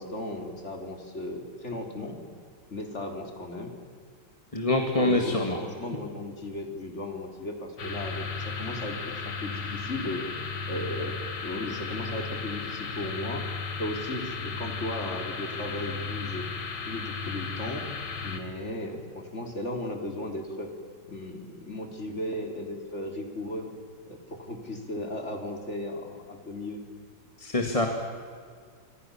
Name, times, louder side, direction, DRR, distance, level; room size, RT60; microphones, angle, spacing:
voice 1, 0.0-2.2 2.7-3.7 5.0-11.2 11.4-13.4 13.8-16.5 16.9-17.8 18.2-20.7 21.1-23.7 24.1-26.8, left 1 dB, 35° left, 4 dB, 3.9 m, -36 dB
voice 2, 4.5-5.6 27.4-27.9, left 2 dB, 20° left, 3 dB, 1.9 m, -25 dB
sound 1, 7.8-18.4, left 4 dB, 80° left, 2.8 m, -35 dB
28.5 x 26.0 x 7.2 m, 2.1 s
omnidirectional pair, 2.1 m